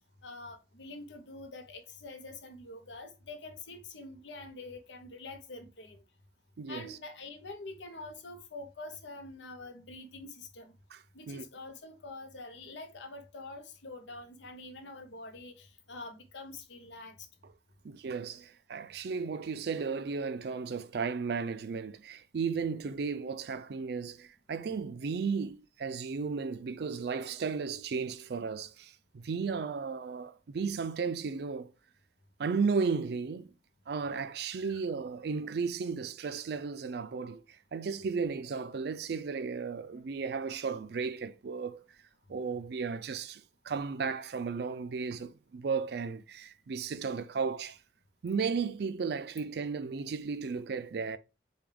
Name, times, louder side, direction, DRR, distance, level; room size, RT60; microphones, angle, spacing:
voice 1, 0.2-6.0 6.7-10.7 11.1-17.3 34.5-34.7, left 2 dB, 85° left, 0.8 m, -46 dB
voice 2, 6.6-7.0 10.9-11.0 11.3-11.4 17.8-31.7 32.4-33.5 33.9-37.4 37.7-41.8 42.3-47.8 48.2-51.2, right 5 dB, 60° right, 0.4 m, -34 dB
6.9 x 2.3 x 3.3 m
head